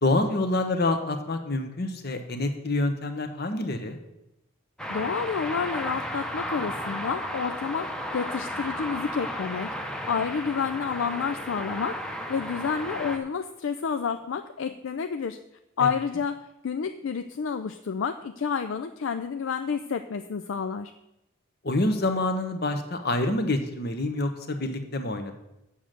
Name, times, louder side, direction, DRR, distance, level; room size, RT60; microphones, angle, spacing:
voice 1, 0.0-4.0 15.8-15.9 21.6-25.3, left 2 dB, 50° left, 7 dB, 1.1 m, -27 dB
sound 1, 4.8-13.2, equal, 5° left, 0.7 m, -34 dB
voice 2, 4.9-9.7 10.1-12.0 12.3-15.4 15.8-20.9, left 6 dB, 65° left, 8 dB, 0.4 m, -29 dB
7.2 x 6.5 x 7.5 m, 0.88 s
head